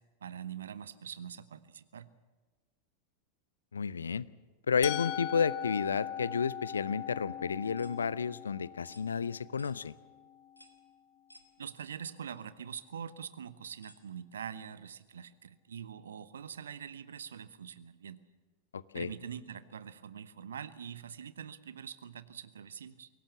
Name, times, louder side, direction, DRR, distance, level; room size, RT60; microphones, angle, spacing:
voice 1, 0.2-2.1 11.6-18.2 18.9-23.1, right 8 dB, 65° right, 15 dB, 0.9 m, -44 dB
voice 2, 3.7-4.3 4.7-9.9 18.7-19.1, left 6 dB, 70° left, 20 dB, 0.5 m, -31 dB
Musical instrument, 4.8-10.7, left 10 dB, 45° left, 1.0 m, -41 dB
sound 1, 7.8-8.0 8.8-9.1 9.6-9.8 10.6-10.8 11.3-11.5 12.3-12.4 13.8-14.0, left 1 dB, 85° left, 1.6 m, -58 dB
23.0 x 17.5 x 7.2 m, 1.3 s
figure-of-eight pair, 90°, 0 cm